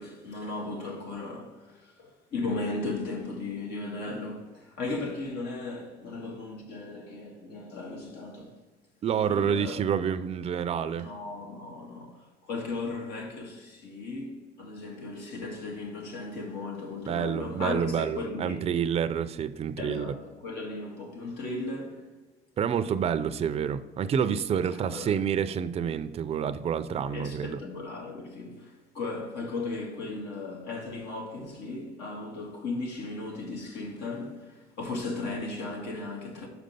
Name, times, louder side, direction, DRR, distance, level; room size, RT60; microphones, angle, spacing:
voice 1, 0.0-8.6 9.3-9.8 10.9-18.7 19.8-22.1 24.7-25.1 27.1-36.5, left 3 dB, 75° left, 1.8 m, -36 dB
voice 2, 9.0-11.1 17.0-20.1 22.6-27.6, right 8 dB, 35° right, 0.4 m, -28 dB
6.0 x 5.2 x 5.3 m
cardioid pair, 110°, 17 cm